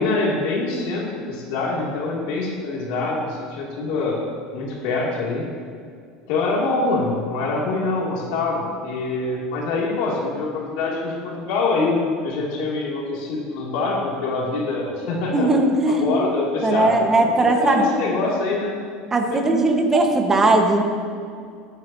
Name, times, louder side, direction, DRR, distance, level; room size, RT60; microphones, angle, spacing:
voice 1, 0.0-4.2 4.5-5.4 6.3-15.5 15.9-18.7 19.3-19.4, left 3 dB, 70° left, -4 dB, 2.6 m, -24 dB
voice 2, 15.3-16.1 16.6-17.9 19.1-20.8, right 2 dB, 20° right, 3 dB, 1.4 m, -18 dB
17.0 x 9.3 x 2.8 m, 2.3 s
supercardioid pair, 125°, 2 cm